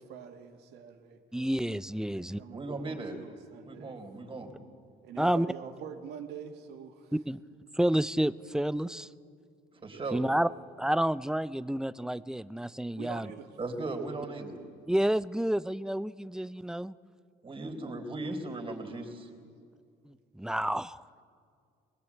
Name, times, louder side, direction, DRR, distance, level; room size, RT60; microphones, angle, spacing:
voice 1, 0.0-1.2 2.0-4.0 5.0-7.1 9.8-10.4 13.0-13.6, right 8 dB, 80° right, 4 dB, 2.4 m, -45 dB
voice 2, 1.3-2.4 5.2-5.5 7.3-7.4 7.7-9.1 10.1-10.5 10.8-13.3 14.9-16.9 20.1-21.0, right 1 dB, 5° right, 17 dB, 0.5 m, -29 dB
voice 3, 2.5-3.2 3.7-4.5 9.8-10.2 13.6-14.6 17.4-19.3, right 2 dB, 30° right, 4 dB, 3.8 m, -37 dB
23.5 x 20.5 x 8.5 m, 2.3 s
cardioid pair, 110°, 17 cm